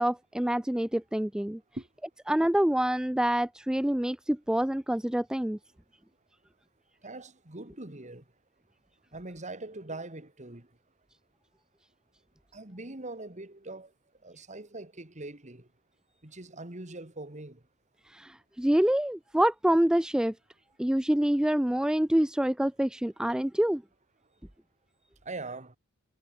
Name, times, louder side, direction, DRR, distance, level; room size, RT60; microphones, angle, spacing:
voice 1, 0.0-1.6 2.3-5.6 18.1-20.3 20.8-23.8, right 1 dB, 5° right, 0.3 m, -26 dB
voice 2, 7.0-8.2 9.1-10.7 12.5-13.9 14.2-15.7 16.2-17.6 25.2-25.8, right 2 dB, 30° right, 2.5 m, -42 dB
head